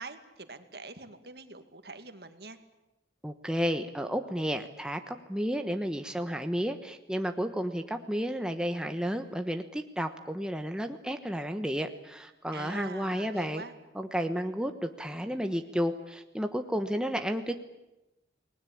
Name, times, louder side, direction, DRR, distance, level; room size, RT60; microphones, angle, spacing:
voice 1, 0.0-2.6 12.5-13.7, right 3 dB, 65° right, 9 dB, 2.1 m, -44 dB
voice 2, 3.2-13.6 13.9-17.5, equal, 5° right, 6 dB, 1.2 m, -32 dB
29.5 x 20.0 x 8.7 m, 0.95 s
head